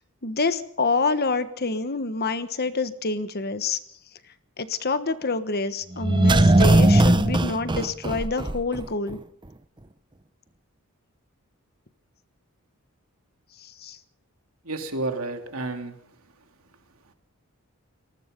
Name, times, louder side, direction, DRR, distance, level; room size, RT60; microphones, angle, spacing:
voice 1, 0.2-3.8 4.6-9.2 13.6-14.0, left 3 dB, 45° left, 12 dB, 1.3 m, -27 dB
sound 1, 6.0-8.8 9.1-9.2, right 1 dB, 20° right, 0.7 m, -18 dB
voice 2, 14.6-15.9, right 2 dB, 70° right, 5 dB, 3.0 m, -30 dB
25.0 x 19.5 x 5.3 m, 0.66 s
head